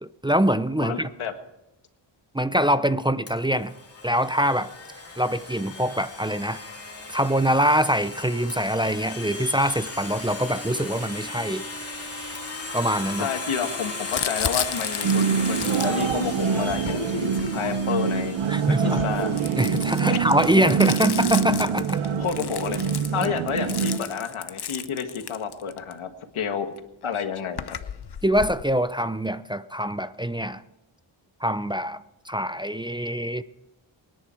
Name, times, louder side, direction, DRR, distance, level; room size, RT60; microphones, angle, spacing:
voice 1, 0.0-1.1 2.3-3.7 4.0-4.7 5.2-6.6 7.1-11.6 12.7-13.3 18.5-19.0 19.6-22.0 28.2-30.6 31.4-33.4, equal, 10° right, 12 dB, 0.6 m, -24 dB
voice 2, 0.8-1.3 13.2-18.4 18.7-19.3 20.1-20.2 22.2-22.8 23.1-26.8 27.0-27.7, left 7 dB, 90° left, 7 dB, 1.7 m, -30 dB
Domestic sounds home sounds, 3.3-20.0, left 3 dB, 30° left, 3.3 m, -37 dB
Crumpling crinkling, 14.1-18.1 18.8-25.9 26.8-26.9 27.0-28.6, left 8 dB, 55° left, 0.9 m, -34 dB
sound 1, 15.0-24.0, right 6 dB, 85° right, 1.1 m, -25 dB
24.0 x 10.5 x 4.5 m, 0.92 s
cardioid pair, 75°, 48 cm